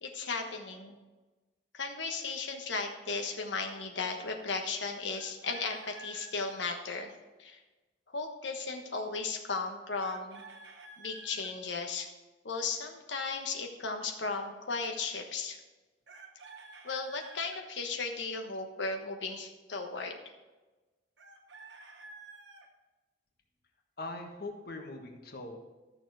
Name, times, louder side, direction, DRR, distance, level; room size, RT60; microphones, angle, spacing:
voice 1, 0.0-1.0 1.7-7.1 7.4-7.6 8.1-10.4 11.0-12.1 12.4-15.6 16.8-20.2, left 4 dB, 85° left, 4 dB, 1.2 m, -36 dB
Chicken rooster, 5.1-6.6 10.0-11.5 16.1-17.6 21.2-22.7, right 3 dB, 80° right, 1.3 m, -51 dB
voice 2, 24.0-25.6, left 2 dB, 55° left, 3 dB, 1.5 m, -41 dB
13.0 x 6.9 x 4.8 m, 1.2 s
head